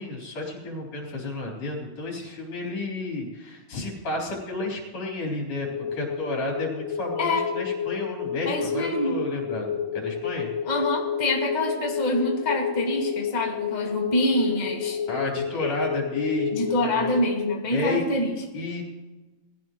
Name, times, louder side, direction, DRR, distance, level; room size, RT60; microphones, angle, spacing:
voice 1, 0.0-10.5 15.1-17.1 17.7-18.1 18.5-18.8, left 2 dB, 55° left, -3 dB, 5.2 m, -31 dB
sound 1, 5.6-17.6, left 8 dB, 80° left, 2.2 m, -30 dB
voice 2, 8.4-9.2 10.7-15.0 15.6-15.7 16.5-18.3, left 1 dB, 15° left, -1 dB, 1.6 m, -26 dB
21.5 x 16.0 x 3.1 m, 1.2 s
omnidirectional pair, 3.7 m